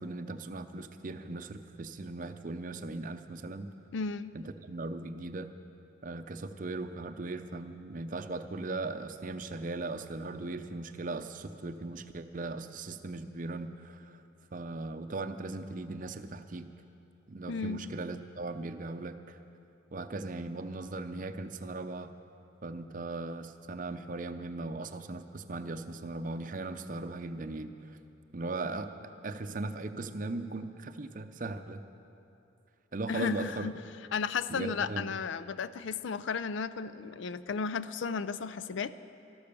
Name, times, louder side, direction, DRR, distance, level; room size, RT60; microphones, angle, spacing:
voice 1, 0.0-3.7 4.3-5.5 6.0-14.2 14.5-16.7 17.3-19.4 19.9-22.1 22.6-28.0 28.3-28.9 29.2-31.8 32.9-33.7 34.5-35.1, right 2 dB, 40° right, 9 dB, 0.6 m, -38 dB
voice 2, 3.9-4.3 17.5-17.8 33.1-33.8 34.1-38.9, left 5 dB, 70° left, 14 dB, 0.4 m, -34 dB
13.0 x 12.0 x 6.9 m, 3.0 s
head